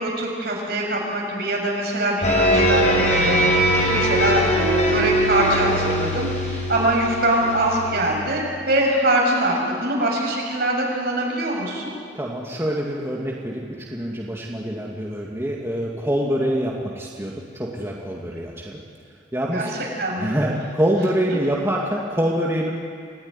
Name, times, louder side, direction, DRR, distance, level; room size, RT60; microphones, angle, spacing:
voice 1, 0.0-3.4 3.9-12.0 19.5-19.7 20.0-20.4, right 1 dB, 60° right, -1 dB, 6.8 m, -23 dB
sound 1, 2.2-8.4, equal, 40° left, 6.1 m, -21 dB
voice 2, 12.1-18.8 19.3-19.7 20.2-22.7, equal, 15° right, -3 dB, 2.2 m, -25 dB
27.5 x 17.0 x 9.8 m, 2.2 s
head